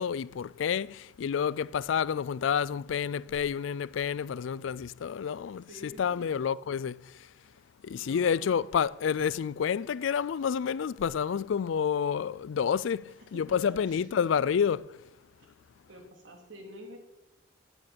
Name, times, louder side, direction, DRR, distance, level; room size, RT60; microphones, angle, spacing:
voice 1, 0.0-5.7 6.0-7.3 7.8-15.0, left 7 dB, 75° left, 0.3 m, -29 dB
voice 2, 5.7-6.3 8.0-8.7 13.2-14.4 15.4-15.5 15.9-17.0, equal, 70° right, 2.7 m, -49 dB
9.7 x 9.0 x 8.6 m
head